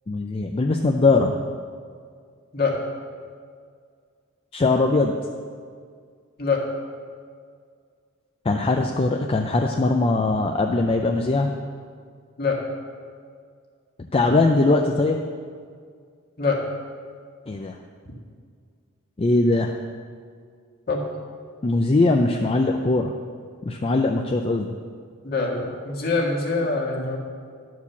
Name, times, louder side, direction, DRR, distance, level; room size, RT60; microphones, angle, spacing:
voice 1, 0.1-1.3 4.5-5.1 8.5-11.5 14.1-15.2 17.5-17.8 19.2-19.7 21.6-23.1 23.6-24.7, left 2 dB, 25° left, 3 dB, 0.4 m, -21 dB
voice 2, 25.2-27.2, left 3 dB, 45° left, -2 dB, 1.7 m, -24 dB
11.5 x 4.7 x 7.0 m, 2.1 s
head